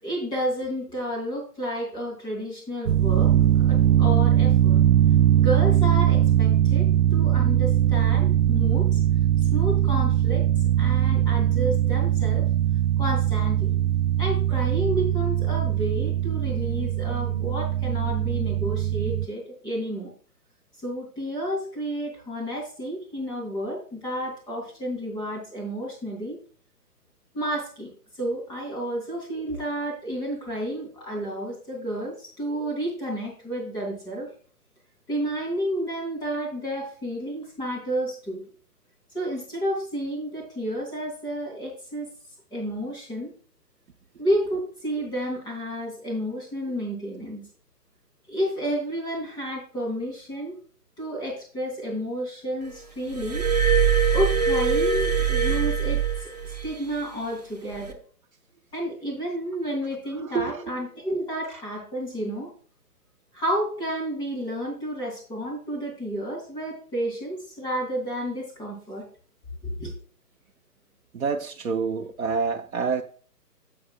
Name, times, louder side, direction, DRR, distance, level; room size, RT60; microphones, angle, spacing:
voice 1, 0.0-4.8 5.4-9.0 9.5-10.5 10.8-12.5 13.0-13.7 14.2-20.1 20.8-26.4 27.3-27.9 28.2-34.3 35.1-38.4 39.1-42.1 42.5-43.3 44.2-47.4 48.3-50.6 51.0-53.5 54.1-58.0 58.7-62.5 63.3-69.1 69.6-69.9, equal, 10° left, 3.2 m, -31 dB
sound 1, 2.9-19.3, right 11 dB, 85° right, 0.6 m, -21 dB
Glass, 53.1-56.7 57.7-57.9, right 6 dB, 25° right, 0.5 m, -23 dB
voice 2, 60.2-60.7 71.1-73.0, right 5 dB, 60° right, 0.9 m, -27 dB
11.0 x 8.0 x 2.4 m
figure-of-eight pair, 140°, 48 cm